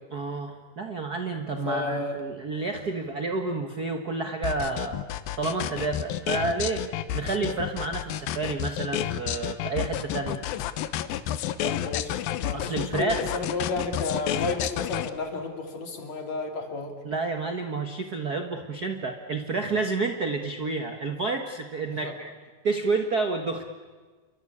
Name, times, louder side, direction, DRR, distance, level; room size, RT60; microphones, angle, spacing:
voice 1, 0.1-5.0 5.4-6.8 7.1-10.4 12.5-13.3 17.0-22.3 22.6-23.6, right 3 dB, 60° right, 5 dB, 1.0 m, -30 dB
voice 2, 1.7-2.2 11.6-16.9 21.9-22.1, left 3 dB, 50° left, 4 dB, 3.8 m, -32 dB
sound 1, 4.4-15.1, left 11 dB, 80° left, 2.7 m, -30 dB
29.0 x 24.0 x 8.6 m, 1.4 s
omnidirectional pair, 4.1 m